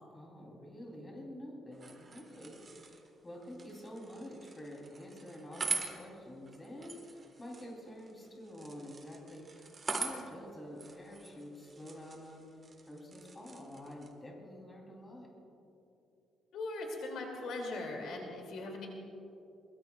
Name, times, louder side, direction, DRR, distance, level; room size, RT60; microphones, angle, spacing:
voice 1, 0.1-12.4 12.8-15.3, equal, 20° left, -2 dB, 3.3 m, -48 dB
sound 1, 1.7-14.1, right 4 dB, 30° right, 1.5 m, -44 dB
voice 2, 16.5-18.9, left 2 dB, 75° left, 1 dB, 2.6 m, -40 dB
22.5 x 21.0 x 2.4 m, 2.8 s
cardioid pair, 155°, 0 cm